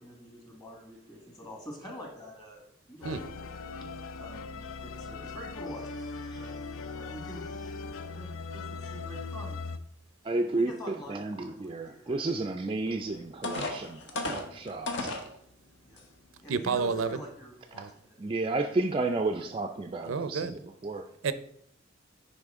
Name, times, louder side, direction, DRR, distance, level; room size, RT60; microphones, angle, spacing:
voice 1, 0.0-3.9 4.2-9.6 10.6-12.3 12.9-13.2 13.9-14.1 15.8-16.0 16.4-18.2, equal, 20° left, 1 dB, 1.6 m, -47 dB
sound 1, 3.0-9.8, left 4 dB, 85° left, 0.5 m, -39 dB
voice 2, 10.2-15.2 18.2-21.1, right 2 dB, 25° right, 6 dB, 0.3 m, -32 dB
sound 2, 12.9-13.0 13.4-15.3 16.0-16.1 16.6-16.8, left 2 dB, 60° left, 1.1 m, -34 dB
voice 3, 16.5-17.2 17.8-17.9 20.1-20.5 21.2-21.3, right 5 dB, 90° right, 12 dB, 0.5 m, -29 dB
10.5 x 4.2 x 3.6 m, 0.68 s
head